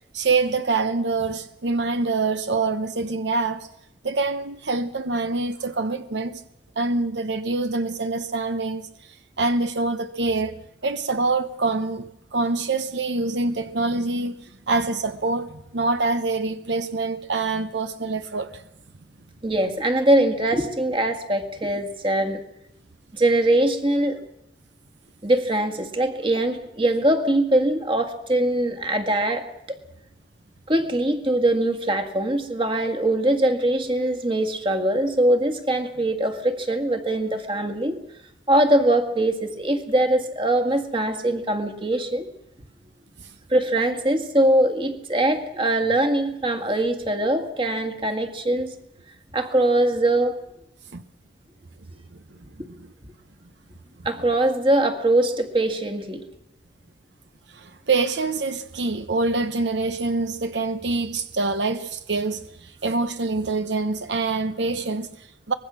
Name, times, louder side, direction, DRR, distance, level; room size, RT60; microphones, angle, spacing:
voice 1, 0.1-3.7 4.0-6.4 6.8-10.6 10.8-18.6 43.2-43.3 50.9-51.0 52.1-52.9 57.5-65.5, right 3 dB, 75° right, 0.9 m, -25 dB
voice 2, 19.4-22.4 23.1-24.2 25.2-29.5 30.7-38.0 38.5-42.3 43.5-48.7 49.3-50.4 54.1-56.2, right 1 dB, 30° right, 1.8 m, -22 dB
24.5 x 21.0 x 6.2 m
head